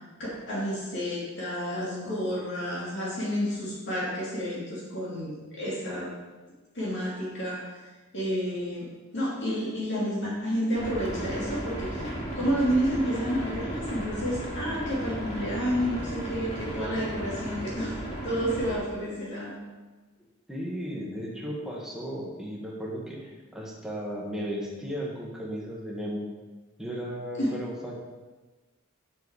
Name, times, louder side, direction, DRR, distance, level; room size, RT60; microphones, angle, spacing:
voice 1, 0.5-6.1 6.7-7.8 8.1-12.1 12.3-18.0 18.2-19.6 27.4-27.5, equal, 55° left, -5 dB, 2.4 m, -30 dB
sound 1, 10.7-18.8, right 1 dB, 30° left, 2.1 m, -35 dB
voice 2, 20.5-26.2 26.8-27.9, equal, ahead, -3 dB, 1.4 m, -35 dB
7.8 x 6.9 x 4.8 m, 1.2 s
head